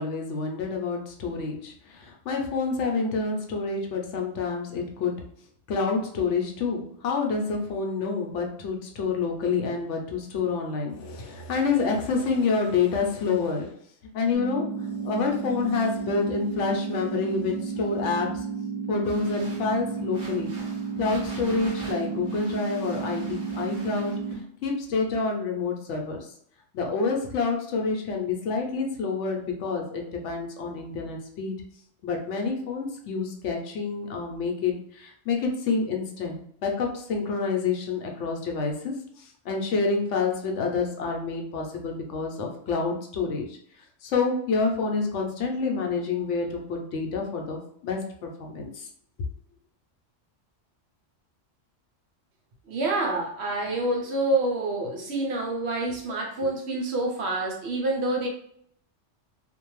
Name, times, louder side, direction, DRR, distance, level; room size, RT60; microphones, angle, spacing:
voice 1, 0.0-5.1 5.7-13.7 14.1-18.4 18.9-20.5 21.0-24.1 24.6-26.3 26.7-31.6 32.0-43.6 44.0-48.9, left 4 dB, 75° left, 2 dB, 0.9 m, -28 dB
sound 1, 14.3-24.3, right 6 dB, 20° right, 0.8 m, -32 dB
sound 2, 19.0-24.4, right 1 dB, 50° right, 1.1 m, -45 dB
voice 2, 52.7-58.3, right 2 dB, 65° right, 0 dB, 0.8 m, -27 dB
2.6 x 2.2 x 3.0 m, 0.65 s
omnidirectional pair, 1.3 m